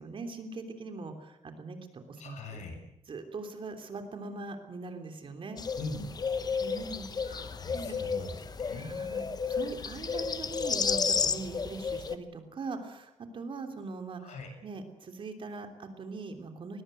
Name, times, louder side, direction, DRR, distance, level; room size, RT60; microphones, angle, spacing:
voice 1, 0.0-2.6 3.1-5.6 6.6-7.4 7.7-7.9 8.7-14.3 14.6-16.8, right 3 dB, 45° right, 6 dB, 3.2 m, -41 dB
voice 2, 2.2-2.8 5.8-6.0 7.2-9.0 14.2-14.5, left 3 dB, 70° left, 4 dB, 7.3 m, -41 dB
sound 1, 5.6-12.1, left 5 dB, 30° left, 1.1 m, -32 dB
21.5 x 20.0 x 8.0 m, 0.86 s
cardioid pair, 140°, 12 cm